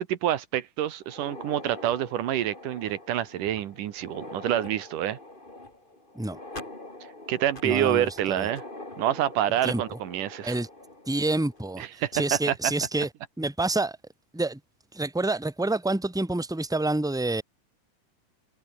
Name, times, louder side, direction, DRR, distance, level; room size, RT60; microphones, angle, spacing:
voice 1, 0.0-5.2 7.3-8.6 9.0-10.6 12.0-12.1 12.5-12.6, right 12 dB, 80° right, 2.9 m, -27 dB
sound 1, 1.0-11.8 12.1-12.2 13.0-13.1 13.6-13.7 15.1-15.3, left 2 dB, 15° left, 4.1 m, -44 dB
voice 2, 7.6-8.5 9.6-9.8 10.4-10.7 11.1-13.1 13.4-14.0 14.3-14.6 14.9-17.4, right 2 dB, ahead, 2.8 m, -28 dB
omnidirectional pair, 3.7 m